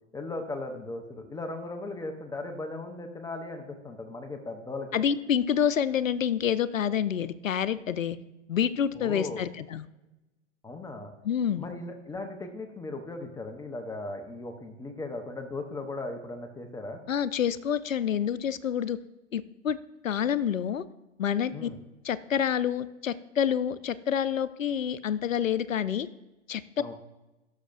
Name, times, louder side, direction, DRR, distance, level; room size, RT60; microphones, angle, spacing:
voice 1, 0.1-5.0 8.9-9.5 10.6-11.1 11.6-17.0 21.5-21.8 26.8-26.9, left 2 dB, 10° left, 4 dB, 0.7 m, -37 dB
voice 2, 4.9-8.2 8.5-9.9 11.2-11.7 17.1-19.0 19.3-19.8 20.0-20.8 21.2-21.7 22.0-26.1 26.5-26.6, left 8 dB, 90° left, 16 dB, 0.6 m, -28 dB
17.5 x 6.5 x 2.5 m, 1.0 s
hypercardioid pair, 115°, 38 cm